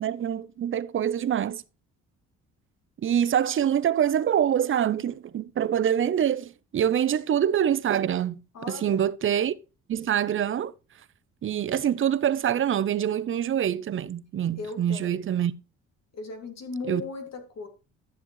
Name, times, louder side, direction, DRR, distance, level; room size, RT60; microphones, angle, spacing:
voice 1, 0.0-1.6 3.0-8.4 8.7-9.5 9.9-10.7 11.4-15.5 16.9-17.0, right 9 dB, 45° right, 0.6 m, -25 dB
voice 2, 8.5-9.0 14.6-15.2 16.1-17.7, left 3 dB, 60° left, 2.5 m, -37 dB
12.5 x 7.1 x 3.1 m
supercardioid pair, 70°, 30 cm